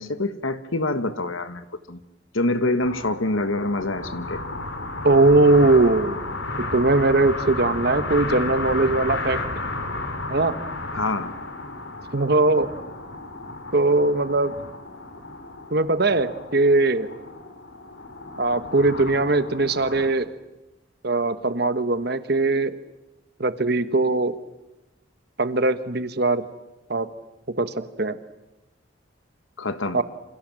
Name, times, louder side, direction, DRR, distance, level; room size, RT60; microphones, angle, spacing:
voice 1, 0.0-2.0 2.3-4.4 10.9-11.3 29.6-30.0, left 2 dB, 90° left, 11 dB, 1.7 m, -26 dB
sound 1, 2.8-20.1, left 2 dB, 70° left, 3.7 m, -33 dB
voice 2, 5.0-6.2 6.6-9.4 10.3-10.5 12.1-12.7 13.7-14.5 15.7-17.1 18.4-20.3 21.0-22.7 23.4-24.3 25.4-26.4 26.9-27.1 27.5-28.2 29.9-30.0, right 2 dB, 55° right, 12 dB, 1.2 m, -20 dB
28.0 x 27.0 x 7.6 m, 0.97 s
head